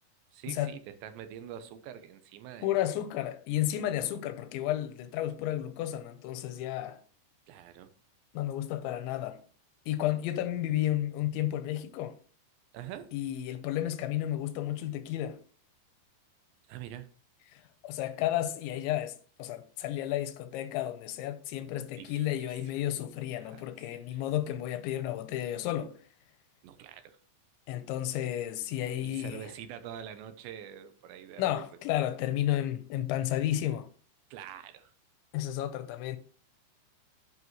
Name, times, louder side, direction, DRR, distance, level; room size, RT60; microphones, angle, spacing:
voice 1, 0.3-2.9 4.0-4.1 7.5-7.9 12.7-13.1 16.7-17.1 20.0-20.1 22.0-22.6 23.4-23.7 24.1-24.2 26.6-27.2 29.0-31.6 34.3-34.9, right 10 dB, 80° right, 2.9 m, -45 dB
voice 2, 2.6-7.0 8.3-9.4 9.9-12.2 13.1-15.4 17.5-25.9 27.7-29.5 31.4-33.9 35.3-36.2, left 12 dB, 90° left, 3.2 m, -32 dB
9.8 x 7.8 x 3.1 m
omnidirectional pair, 5.2 m